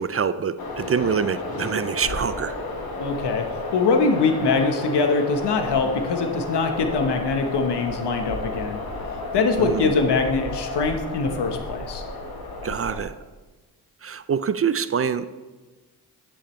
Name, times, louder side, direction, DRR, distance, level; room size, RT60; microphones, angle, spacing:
voice 1, 0.0-2.6 9.6-9.9 12.6-13.1 14.0-15.4, right 7 dB, 35° right, 14 dB, 0.4 m, -25 dB
sound 1, 0.6-13.0, left 2 dB, 60° left, 1.6 m, -32 dB
voice 2, 3.0-3.4 3.7-8.8 9.3-12.0, left 4 dB, 80° left, 5 dB, 1.1 m, -23 dB
10.0 x 7.7 x 3.2 m, 1.3 s
cardioid pair, 55°, 40 cm